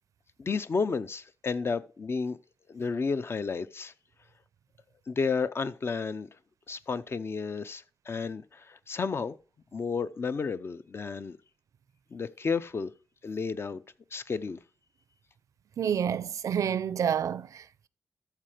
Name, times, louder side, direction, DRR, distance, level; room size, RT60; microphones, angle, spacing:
voice 1, 0.4-2.4 2.7-3.9 5.1-6.3 6.7-9.4 9.7-11.4 12.1-12.9 13.2-13.8 14.1-14.6, left 5 dB, 45° left, 0.7 m, -32 dB
voice 2, 15.8-17.9, right 8 dB, 75° right, 0.5 m, -29 dB
13.5 x 4.5 x 5.0 m
cardioid pair, 75°, 6 cm